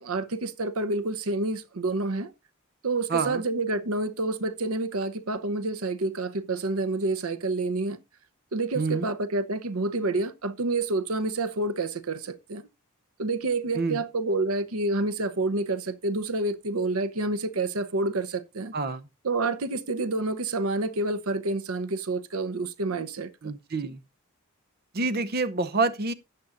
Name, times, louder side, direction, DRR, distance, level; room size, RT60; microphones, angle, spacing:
voice 1, 0.0-2.3 2.8-8.0 8.5-12.6 13.2-18.7 19.2-23.3, right 2 dB, 85° right, 0.8 m, -28 dB
voice 2, 3.1-3.4 8.7-9.1 13.8-14.0 18.7-19.1 23.4-24.0 24.9-26.1, right 3 dB, 45° right, 0.7 m, -27 dB
13.5 x 8.4 x 2.5 m
head